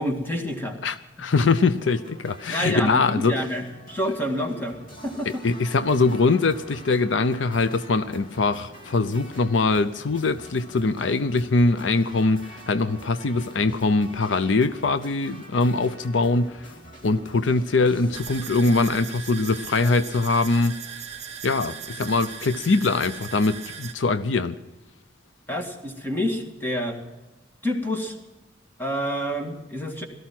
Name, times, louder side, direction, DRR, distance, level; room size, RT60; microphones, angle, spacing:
voice 1, 0.0-0.8 2.5-5.4 25.5-27.0 27.6-28.1 28.8-30.1, equal, 10° left, 3 dB, 2.0 m, -28 dB
voice 2, 0.8-3.3 4.1-4.2 5.3-16.7 17.0-20.8 21.4-24.6, left 3 dB, 80° left, 13 dB, 0.6 m, -22 dB
sound 1, 1.7-18.5, equal, 45° left, 2.7 m, -46 dB
sound 2, 18.1-23.9, right 8 dB, 35° right, 1.2 m, -38 dB
17.5 x 13.5 x 6.0 m, 1.0 s
head